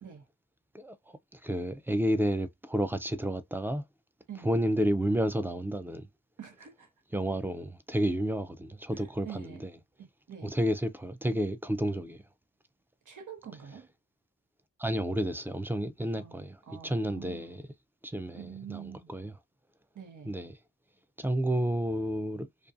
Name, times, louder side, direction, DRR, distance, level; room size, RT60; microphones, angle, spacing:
voice 1, 0.7-3.9 4.4-6.1 7.1-9.7 10.4-12.2 14.8-16.6 16.8-17.6 18.0-19.3 20.3-20.5 21.2-22.5, right 1 dB, 5° right, 0.3 m, -31 dB
voice 2, 6.4-6.9 8.9-9.6 10.0-10.5 13.0-13.9 16.2-17.6 18.4-19.1 19.9-20.4, right 8 dB, 90° right, 0.9 m, -46 dB
2.5 x 2.3 x 2.5 m
wide cardioid pair, 85°, 30 cm